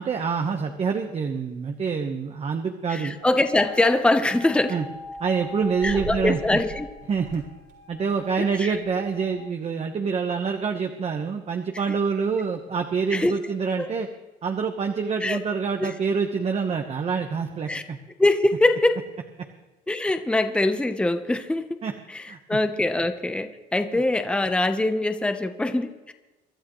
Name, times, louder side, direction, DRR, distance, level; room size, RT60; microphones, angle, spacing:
voice 1, 0.0-3.2 4.7-4.8 5.2-6.6 7.1-7.4 7.9-14.1 14.4-18.0 21.8-21.9 22.3-22.4, right 5 dB, 40° right, 4 dB, 1.2 m, -26 dB
voice 2, 2.9-4.8 5.8-6.9 8.4-8.8 13.1-13.3 13.8-13.9 15.2-15.4 15.8-15.9 17.7-17.8 18.2-19.1 19.9-21.7 22.1-26.1, left 2 dB, 5° left, 8 dB, 0.9 m, -23 dB
sound 1, 3.2-9.4, right 1 dB, 75° right, 4.5 m, -40 dB
25.0 x 12.0 x 3.2 m, 1.1 s
cardioid pair, 110°, 17 cm